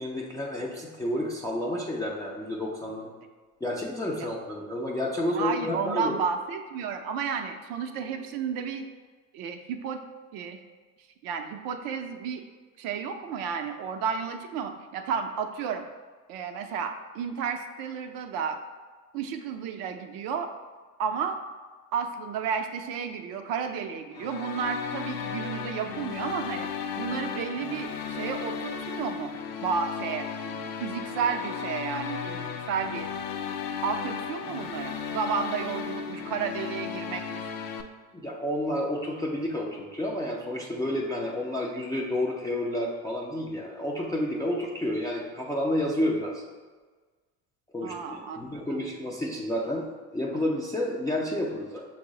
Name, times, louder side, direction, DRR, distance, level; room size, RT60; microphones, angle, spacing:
voice 1, 0.0-3.1 3.6-6.1 38.1-46.4 47.7-51.9, left 1 dB, 10° left, -4 dB, 0.3 m, -30 dB
voice 2, 5.3-8.9 9.3-10.0 10.3-10.6 11.2-12.4 12.8-15.8 16.3-18.6 19.1-20.5 21.0-21.4 21.9-26.7 27.0-29.4 29.6-33.1 33.8-37.5 47.8-48.7, right 6 dB, 50° right, 6 dB, 0.5 m, -32 dB
sound 1, 24.1-37.8, left 7 dB, 80° left, 0.5 m, -35 dB
5.9 x 2.0 x 3.7 m, 1.4 s
hypercardioid pair, 80°, 46 cm